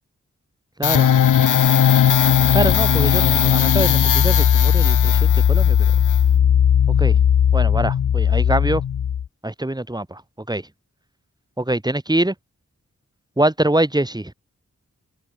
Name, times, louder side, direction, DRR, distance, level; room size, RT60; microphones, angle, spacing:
sound 1, 0.8-9.3, left 8 dB, 85° left, 0.7 m, -16 dB
voice 1, 0.8-1.1 2.5-5.8 7.0-7.2 7.5-8.8 9.4-10.2 10.5-10.6 11.6-12.3 13.4-14.3, right 1 dB, 15° right, 3.0 m, -23 dB
wide cardioid pair, 85°, 30 cm